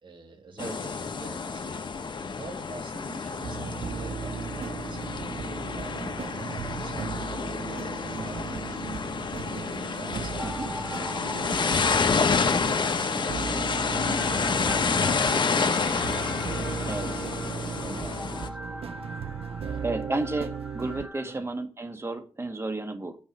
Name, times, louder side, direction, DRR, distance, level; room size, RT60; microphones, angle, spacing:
voice 1, 0.0-1.8 2.3-9.1 9.7-12.2 12.7-16.3 17.4-19.0 19.6-20.2 21.2-21.5, right 3 dB, 55° right, 2.7 m, -46 dB
sound 1, 0.6-18.5, left 5 dB, 50° left, 1.2 m, -29 dB
sound 2, 3.4-21.1, right 6 dB, 80° right, 0.8 m, -37 dB
sound 3, 10.4-21.3, equal, 5° right, 1.8 m, -42 dB
voice 2, 16.9-17.3 19.8-23.2, right 2 dB, 25° right, 1.7 m, -32 dB
9.1 x 5.4 x 7.2 m
cardioid pair, 85°, 10 cm